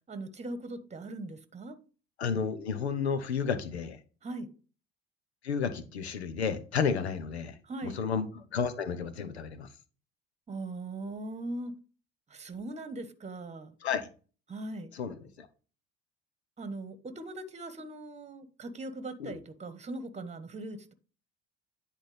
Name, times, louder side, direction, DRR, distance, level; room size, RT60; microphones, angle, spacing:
voice 1, 0.1-1.8 4.2-4.5 7.7-8.0 10.5-11.7 12.3-13.7 14.5-14.9 16.6-20.9, right 2 dB, 20° right, 1.2 m, -40 dB
voice 2, 2.2-4.0 5.4-9.7 13.8-14.1 14.9-15.5 19.2-19.4, left 6 dB, 85° left, 0.9 m, -32 dB
10.0 x 4.3 x 3.4 m
hypercardioid pair, 60°, 32 cm